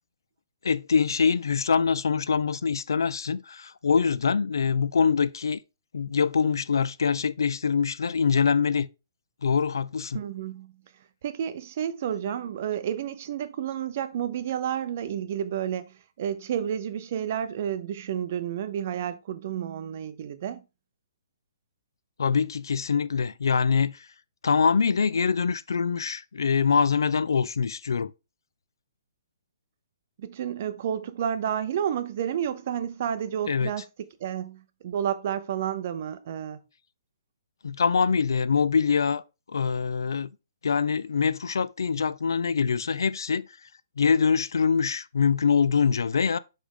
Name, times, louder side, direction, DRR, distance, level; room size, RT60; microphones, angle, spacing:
voice 1, 0.6-5.6 5.9-8.9 9.4-10.2 22.2-24.0 24.4-28.1 33.5-33.7 37.6-39.2 39.5-40.3 40.6-43.5 44.0-46.4, left 6 dB, 85° left, 0.4 m, -24 dB
voice 2, 10.1-10.7 11.2-20.6 30.2-33.8 34.2-36.6, right 9 dB, 30° right, 0.5 m, -30 dB
5.1 x 5.0 x 3.7 m
hypercardioid pair, 175°, 2 cm